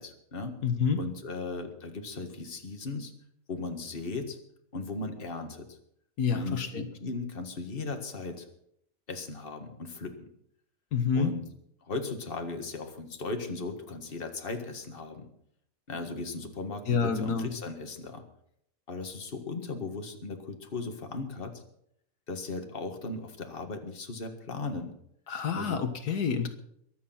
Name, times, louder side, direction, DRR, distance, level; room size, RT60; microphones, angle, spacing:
voice 1, 0.0-0.6 1.0-3.1 3.5-4.4 4.7-5.8 6.3-8.5 9.1-10.3 11.1-11.4 11.8-15.3 15.9-18.2 18.9-21.6 22.3-24.9 25.5-25.8, left 3 dB, 35° left, 5 dB, 2.0 m, -37 dB
voice 2, 0.6-1.0 6.2-6.9 10.9-11.3 16.9-17.5 25.3-26.5, left 6 dB, 85° left, 7 dB, 2.0 m, -28 dB
22.5 x 8.5 x 5.9 m, 0.71 s
omnidirectional pair, 1.6 m